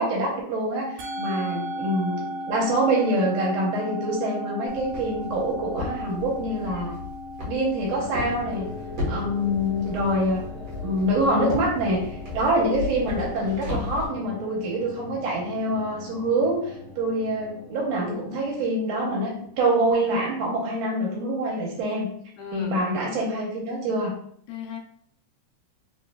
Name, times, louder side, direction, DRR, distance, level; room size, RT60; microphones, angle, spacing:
voice 1, 0.0-7.0 7.4-8.7 9.1-10.4 10.8-22.1 22.5-24.1, right 1 dB, 70° right, -3 dB, 1.9 m, -25 dB
Musical instrument, 1.0-19.5, left 1 dB, 85° right, 2.0 m, -39 dB
Walk footsteps, 4.7-14.0, left 3 dB, 50° right, 1.3 m, -35 dB
sound 1, 7.9-20.0, left 1 dB, 35° left, 1.2 m, -43 dB
voice 2, 22.4-22.8 24.5-24.8, left 7 dB, 80° left, 2 dB, 1.8 m, -36 dB
4.3 x 3.0 x 2.2 m, 0.66 s
omnidirectional pair, 3.3 m